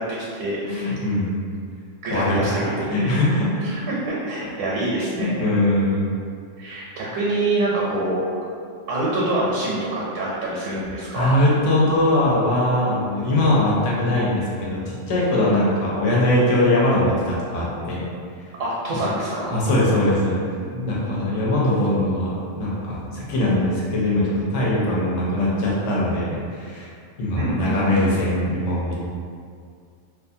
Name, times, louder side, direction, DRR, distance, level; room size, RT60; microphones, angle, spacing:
voice 1, 0.0-0.9 2.0-3.1 3.6-5.5 6.6-8.2 8.9-11.3 18.6-19.6 20.6-21.3 27.4-27.9, right 2 dB, 75° right, -6 dB, 0.9 m, -26 dB
voice 2, 0.6-1.4 2.1-3.6 5.2-6.1 11.1-18.0 19.5-20.4 20.8-26.9 27.2-29.0, left 1 dB, 70° left, -6 dB, 1.0 m, -21 dB
2.4 x 2.4 x 2.6 m, 2.2 s
omnidirectional pair, 1.3 m